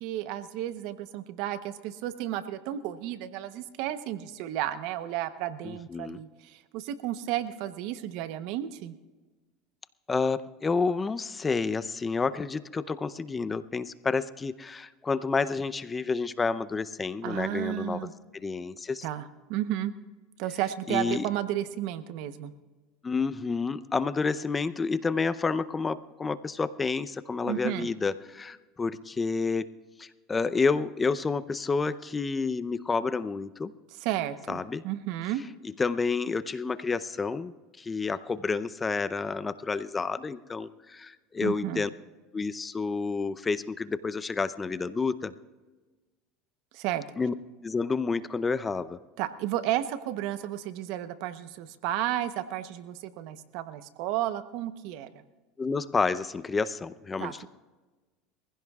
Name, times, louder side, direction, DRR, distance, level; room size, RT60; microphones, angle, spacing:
voice 1, 0.0-8.9 17.2-18.1 19.0-19.9 20.4-22.5 27.4-27.9 34.0-35.4 41.4-41.8 46.7-47.0 49.2-55.2 57.2-57.5, right 13 dB, 70° right, 12 dB, 0.9 m, -33 dB
voice 2, 5.6-6.2 10.1-18.1 18.3-19.0 20.9-21.3 23.0-29.7 30.0-33.7 34.5-34.8 35.8-41.9 42.3-45.3 47.2-47.3 47.6-49.0 55.6-57.5, left 4 dB, 20° left, 15 dB, 0.6 m, -29 dB
23.0 x 15.5 x 2.4 m, 1.2 s
supercardioid pair, 100°, 0 cm